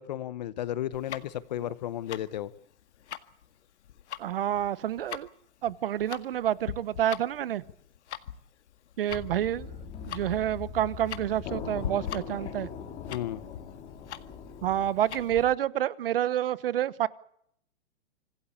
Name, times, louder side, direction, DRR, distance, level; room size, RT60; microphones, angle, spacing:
voice 1, 0.0-2.5 13.1-13.4, left 12 dB, 40° left, 1.0 m, -33 dB
Tick-tock, 0.9-15.5, left 10 dB, 75° left, 1.9 m, -42 dB
voice 2, 4.2-5.3 5.6-7.6 9.0-9.7 10.0-12.7 14.6-17.1, right 11 dB, 50° right, 1.0 m, -28 dB
sound 1, 9.1-14.9, left 7 dB, 15° left, 2.8 m, -41 dB
26.5 x 17.0 x 8.4 m
supercardioid pair, 180°, 35 cm